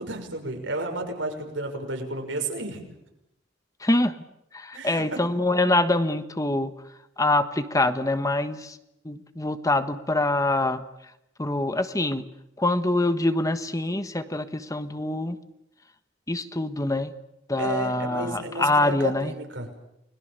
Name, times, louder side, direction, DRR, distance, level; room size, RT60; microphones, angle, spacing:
voice 1, 0.0-2.8 4.7-5.2 17.6-19.7, right 2 dB, 90° right, 4 dB, 6.2 m, -32 dB
voice 2, 3.8-4.2 4.5-6.7 7.2-8.8 9.0-10.8 11.4-12.2 12.6-15.4 16.3-17.1 17.5-19.3, left 2 dB, 20° left, 10 dB, 1.4 m, -25 dB
29.5 x 21.5 x 6.8 m, 0.83 s
head